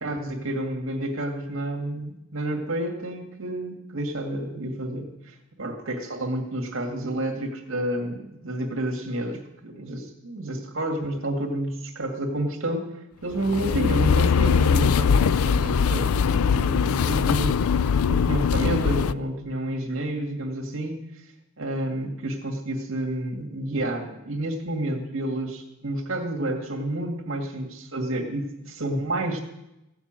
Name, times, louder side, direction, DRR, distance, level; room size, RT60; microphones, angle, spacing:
voice 1, 0.0-17.7 18.1-21.0 21.6-29.4, right 1 dB, 60° right, 2 dB, 2.1 m, -30 dB
sound 1, 13.3-19.1, left 6 dB, 75° left, 0.4 m, -21 dB
15.5 x 7.1 x 8.9 m, 0.90 s
head